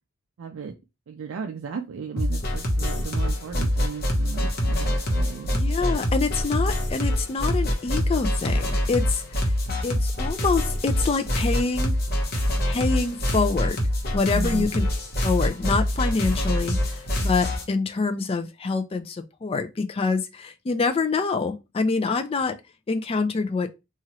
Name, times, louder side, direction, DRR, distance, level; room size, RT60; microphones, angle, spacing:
voice 1, 0.4-0.8 1.1-5.5 14.3-14.7, right 5 dB, 65° right, 0.4 m, -35 dB
sound 1, 2.2-17.6, equal, 45° left, 0.9 m, -25 dB
voice 2, 5.5-9.4 9.8-12.0 12.6-13.8 14.1-14.8 15.2-16.9 17.2-22.6 22.9-23.7, left 4 dB, 25° left, 0.3 m, -26 dB
2.9 x 2.4 x 2.7 m
head